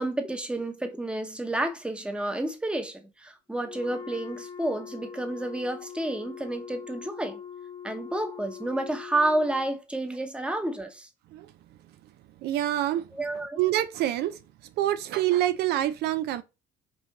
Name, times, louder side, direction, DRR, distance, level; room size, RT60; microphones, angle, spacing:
voice 1, 0.0-7.4 7.8-11.1 13.1-13.6, right 1 dB, 5° right, 0.9 m, -30 dB
Wind instrument woodwind instrument, 3.6-9.7, left 8 dB, 30° left, 0.6 m, -42 dB
voice 2, 12.4-13.1 13.6-14.4 14.8-16.4, right 13 dB, 75° right, 0.5 m, -26 dB
5.4 x 2.6 x 2.9 m
cardioid pair, 110°, 17 cm